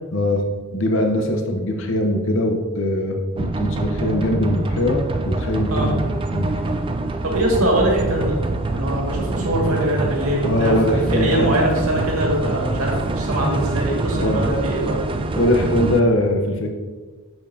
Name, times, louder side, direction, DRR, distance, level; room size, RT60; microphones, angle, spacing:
voice 1, 0.1-0.4 0.7-6.0 6.3-6.5 10.4-11.5 14.1-14.5 15.4-16.7, left 1 dB, 60° left, 3 dB, 0.8 m, -21 dB
sound 1, 3.4-16.0, right 2 dB, 25° right, 0.3 m, -25 dB
voice 2, 7.2-8.3 8.7-15.0, right 1 dB, 80° right, -2 dB, 1.9 m, -22 dB
7.9 x 6.8 x 2.7 m, 1.4 s
head